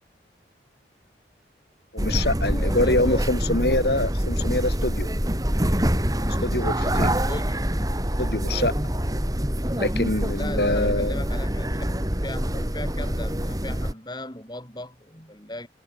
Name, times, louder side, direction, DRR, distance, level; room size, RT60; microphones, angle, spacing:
voice 1, 1.9-5.1 6.4-7.2 8.2-8.7 9.8-11.2, left 1 dB, 60° left, 5.2 m, -25 dB
sound 1, 2.0-13.9, equal, 20° right, 3.9 m, -25 dB
voice 2, 2.5-3.8 7.3-7.8 10.3-15.7, left 1 dB, 25° left, 6.8 m, -37 dB
head